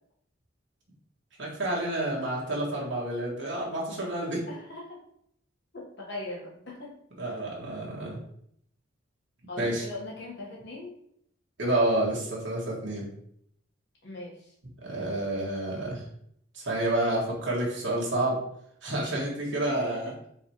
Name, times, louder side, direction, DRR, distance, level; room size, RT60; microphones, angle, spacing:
voice 1, 1.4-4.4 7.2-8.2 9.6-9.8 11.6-13.1 14.8-16.0 16.5-18.4 18.8-20.1, right 1 dB, 60° right, -4 dB, 1.4 m, -29 dB
voice 2, 4.5-5.0 5.7-6.9 9.5-10.9 14.0-14.4 19.5-20.2, left 2 dB, 60° left, -3 dB, 1.2 m, -40 dB
4.8 x 3.3 x 2.9 m, 0.71 s
head